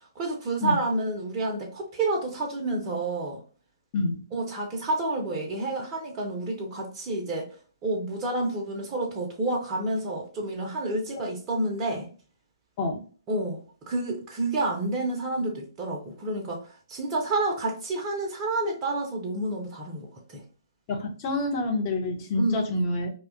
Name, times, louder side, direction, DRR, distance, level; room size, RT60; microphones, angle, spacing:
voice 1, 0.2-3.4 4.3-7.5 7.8-12.1 13.3-20.4 22.4-22.6, right 2 dB, 20° right, 0.5 m, -29 dB
voice 2, 20.9-23.1, left 2 dB, 25° left, 0.6 m, -27 dB
2.7 x 2.2 x 2.4 m
figure-of-eight pair, 130°, 2 cm